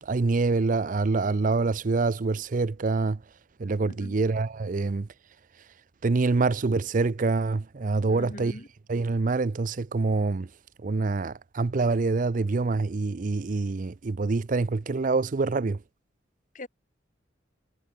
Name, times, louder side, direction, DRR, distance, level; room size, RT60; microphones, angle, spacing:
voice 1, 0.0-3.2 3.6-5.1 6.0-8.6 8.9-10.5 10.8-15.8, right 3 dB, 40° right, 0.5 m, -26 dB
voice 2, 3.9-4.2 8.1-8.7 16.5-16.7, left 1 dB, 40° left, 1.7 m, -42 dB
head